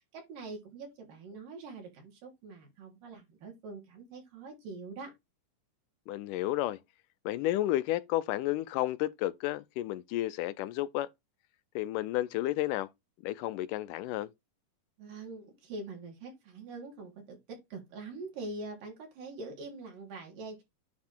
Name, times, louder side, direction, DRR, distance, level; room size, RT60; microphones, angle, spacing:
voice 1, 0.1-5.1 15.0-20.6, right 3 dB, 85° right, 4.6 m, -44 dB
voice 2, 6.1-6.8 7.3-11.1 11.8-12.9 13.2-14.3, left 15 dB, 85° left, 2.1 m, -32 dB
9.5 x 3.5 x 4.4 m
omnidirectional pair, 3.8 m